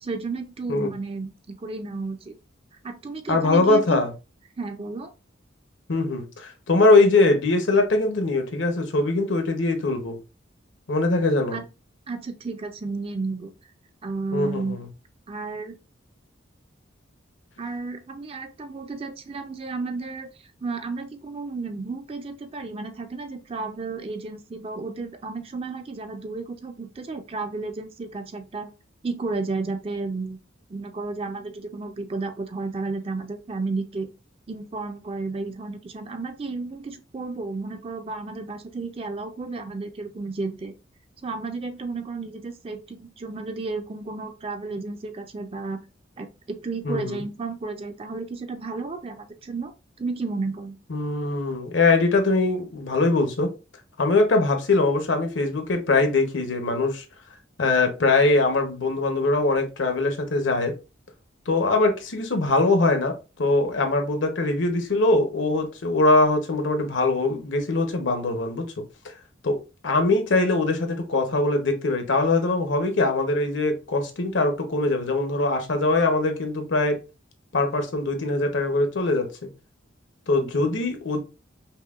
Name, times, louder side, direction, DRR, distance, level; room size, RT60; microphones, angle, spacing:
voice 1, 0.0-2.4 2.8-4.0 4.6-5.1 11.5-11.6 12.1-13.5 14.0-14.8 15.3-15.8 17.6-20.3 20.6-28.7 29.0-30.4 30.7-34.1 34.5-40.7 41.2-45.8 46.2-49.7 50.0-50.8 80.4-80.5, right 3 dB, 30° right, 0.4 m, -32 dB
voice 2, 3.3-4.1 5.9-10.2 10.9-11.6 14.3-14.9 46.8-47.2 50.9-53.5 54.0-57.0 57.6-60.7 61.5-63.1 63.4-68.7 69.4-69.6 69.8-77.0 77.5-79.3 80.3-81.2, left 2 dB, 75° left, 0.8 m, -22 dB
5.5 x 2.2 x 2.4 m
head